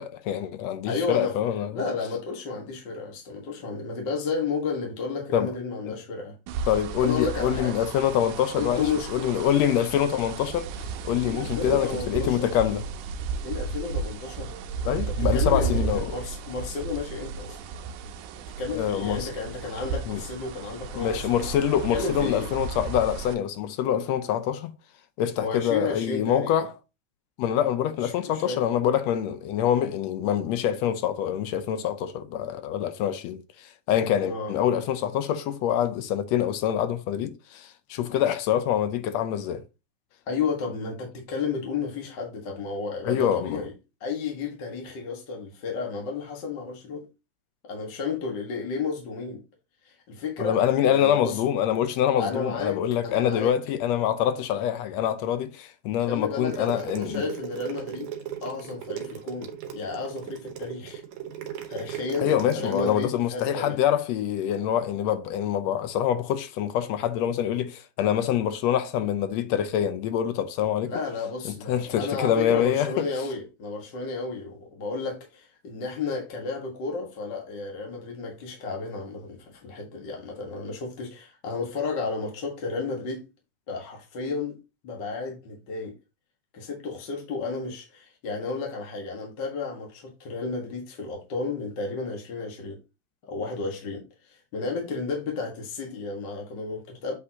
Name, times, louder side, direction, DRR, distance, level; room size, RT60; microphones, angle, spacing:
voice 1, 0.0-1.8 5.3-5.5 5.9-6.0 6.7-10.7 11.0-12.8 14.8-16.1 18.7-19.3 20.1-20.2 21.0-24.7 25.2-26.7 27.4-39.6 43.0-43.6 50.4-57.2 62.2-70.9 71.4-73.1, left 10 dB, 75° left, 1.6 m, -25 dB
voice 2, 0.9-1.4 1.7-6.3 7.0-7.8 8.5-9.2 11.2-12.5 13.4-14.5 14.8-17.6 18.6-22.5 25.4-26.6 28.0-28.6 34.2-34.5 40.3-43.7 44.0-47.0 47.6-49.4 49.8-51.4 52.2-53.5 56.1-58.1 58.4-61.0 61.7-63.8 70.8-83.2 83.7-84.5 84.8-85.9 86.5-92.8 93.3-97.1, left 4 dB, 45° left, 1.7 m, -32 dB
sound 1, 6.5-23.3, right 4 dB, 85° right, 2.2 m, -33 dB
sound 2, 56.4-63.0, right 10 dB, 70° right, 2.2 m, -37 dB
8.1 x 5.1 x 2.8 m
omnidirectional pair, 3.6 m